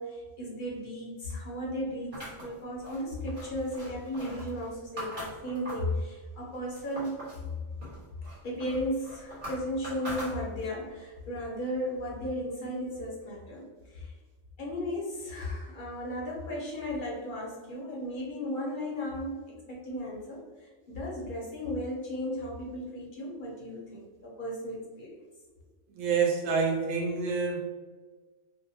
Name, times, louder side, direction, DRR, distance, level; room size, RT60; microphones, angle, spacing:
voice 1, 0.0-7.2 8.4-14.1 14.6-25.2, equal, 50° left, -4 dB, 0.7 m, -35 dB
sound 1, 2.1-6.0 6.4-7.5 7.8-10.8, equal, 45° right, 1.3 m, -42 dB
voice 2, 26.0-27.6, right 5 dB, 90° right, 0 dB, 1.0 m, -27 dB
2.6 x 2.1 x 2.6 m, 1.4 s
omnidirectional pair, 1.3 m